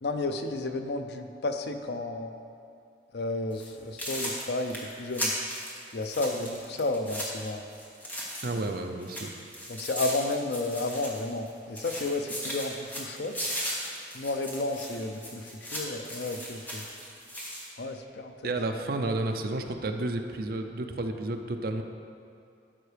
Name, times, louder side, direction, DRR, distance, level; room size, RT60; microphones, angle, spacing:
voice 1, 0.0-2.3 3.1-5.3 5.9-7.6 9.7-13.5 14.1-16.9 17.8-18.8, left 2 dB, 65° left, 7 dB, 0.5 m, -32 dB
sound 1, 3.5-3.7 4.0-8.7 9.0-11.5 11.8-17.7, equal, 10° left, 1.3 m, -37 dB
voice 2, 8.4-9.3 18.4-21.8, right 2 dB, 55° right, 5 dB, 0.5 m, -31 dB
12.5 x 5.6 x 3.3 m, 2.5 s
head